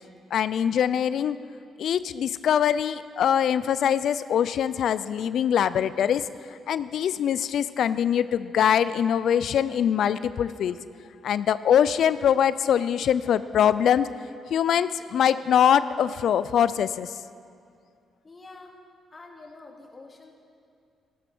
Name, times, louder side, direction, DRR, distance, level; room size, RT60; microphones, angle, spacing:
voice 1, 0.3-1.4 1.8-6.3 6.7-10.8 11.2-14.1 14.5-17.1, left 9 dB, 70° left, 15 dB, 0.3 m, -23 dB
voice 2, 18.2-18.8 19.1-20.3, left 3 dB, 35° left, 1 dB, 2.3 m, -46 dB
13.5 x 13.0 x 6.1 m, 2.3 s
supercardioid pair, 65°, 0 cm